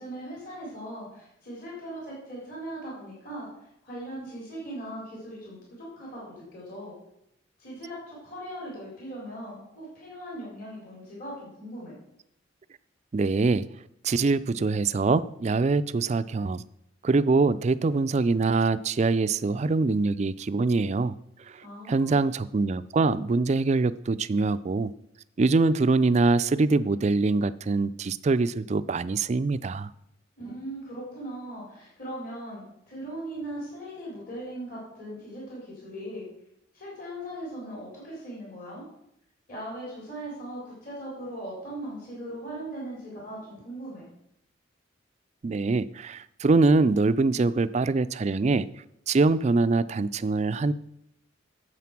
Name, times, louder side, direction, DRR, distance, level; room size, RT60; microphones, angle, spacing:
voice 1, 0.0-3.5 3.8-6.9 7.6-12.0 21.6-22.2 30.4-36.2 36.7-38.8 39.5-44.1, right 1 dB, 45° left, -5 dB, 4.2 m, -39 dB
voice 2, 13.1-13.7 14.0-16.6 17.0-21.2 21.5-24.9 25.4-29.9 45.4-48.7 49.1-50.7, right 3 dB, 35° right, 15 dB, 0.3 m, -24 dB
9.4 x 7.8 x 5.9 m, 0.79 s
head